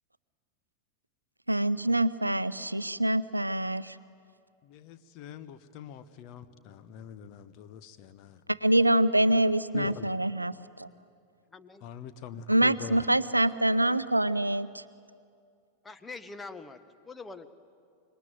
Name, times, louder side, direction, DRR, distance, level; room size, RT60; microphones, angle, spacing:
voice 1, 1.5-4.0 8.5-10.5 10.8-10.9 12.5-14.8, right 1 dB, 85° right, 16 dB, 0.6 m, -25 dB
voice 2, 4.6-8.4 9.7-10.1 11.8-13.1, left 9 dB, 40° left, 11 dB, 1.2 m, -43 dB
voice 3, 11.5-11.8 15.8-16.8 17.1-17.5, left 3 dB, 10° left, 10 dB, 1.2 m, -43 dB
26.0 x 22.5 x 9.3 m, 2.3 s
figure-of-eight pair, 90°, 0 cm